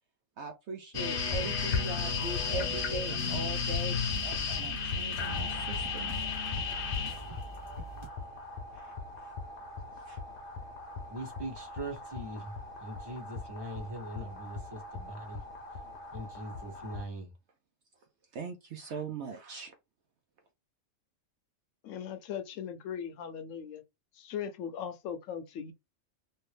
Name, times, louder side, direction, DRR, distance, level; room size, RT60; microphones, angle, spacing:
voice 1, 0.4-6.3 8.7-8.9 10.1-10.2 18.3-19.7, right 4 dB, 65° right, 0.8 m, -41 dB
sound 1, 0.9-17.0, left 5 dB, 50° left, 0.8 m, -36 dB
sound 2, 1.4-8.1, right 5 dB, 45° right, 0.3 m, -45 dB
voice 2, 11.1-15.4 16.1-17.3, right 1 dB, 20° right, 0.9 m, -41 dB
voice 3, 21.8-23.8 24.2-25.7, left 8 dB, 80° left, 1.0 m, -39 dB
2.8 x 2.7 x 3.2 m
omnidirectional pair, 1.3 m